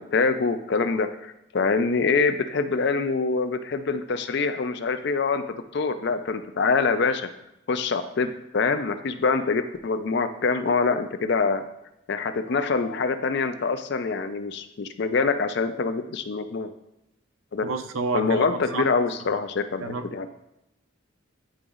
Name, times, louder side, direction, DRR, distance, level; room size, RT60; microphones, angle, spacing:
voice 1, 0.0-7.3 7.7-11.6 12.1-16.7 17.5-17.6 18.1-20.3, left 4 dB, 55° left, 9 dB, 0.4 m, -25 dB
voice 2, 17.6-18.9 19.8-20.1, right 4 dB, 80° right, 9 dB, 0.5 m, -29 dB
10.0 x 3.9 x 2.4 m, 0.86 s
head